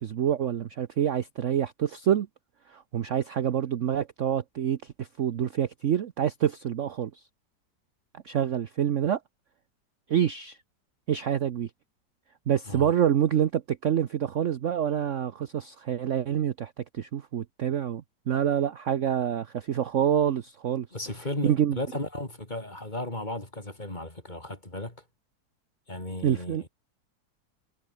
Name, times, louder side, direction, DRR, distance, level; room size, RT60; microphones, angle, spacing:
voice 1, 0.0-2.3 2.7-7.1 8.2-9.2 10.1-10.6 11.1-11.7 12.5-20.9 21.4-21.8 26.2-26.8, right 9 dB, 55° right, 1.0 m, -27 dB
voice 2, 20.9-25.0 25.9-26.6, left 1 dB, 25° left, 4.4 m, -35 dB
omnidirectional pair, 1.9 m